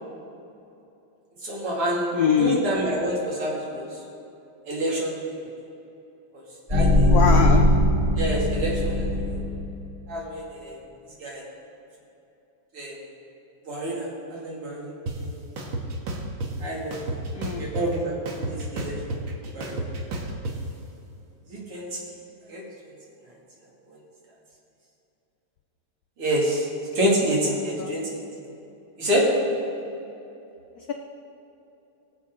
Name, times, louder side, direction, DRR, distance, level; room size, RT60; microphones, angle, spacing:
voice 1, 1.4-2.1 2.4-4.0 4.7-5.2 6.3-6.4 6.7-7.1 8.2-9.4 10.1-10.8 11.2-11.4 12.7-13.0 13.7-15.4 16.6-17.2 17.5-19.2 19.5-19.9 21.5-22.1 22.5-22.9 23.9-24.0 26.2-26.7 26.9-28.2 29.0-29.3, right 1 dB, 85° right, -4 dB, 3.4 m, -28 dB
voice 2, 2.1-2.6 7.1-7.7 17.3-17.7 27.8-27.9 30.8-30.9, left 7 dB, 85° left, 3 dB, 0.8 m, -23 dB
sound 1, 6.7-9.8, left 1 dB, 25° right, 2.4 m, -20 dB
sound 2, 15.1-15.2 15.6-16.5 16.9-18.0 18.3-20.5, right 2 dB, 65° right, 2.0 m, -31 dB
20.5 x 7.3 x 3.7 m, 2.9 s
omnidirectional pair, 2.4 m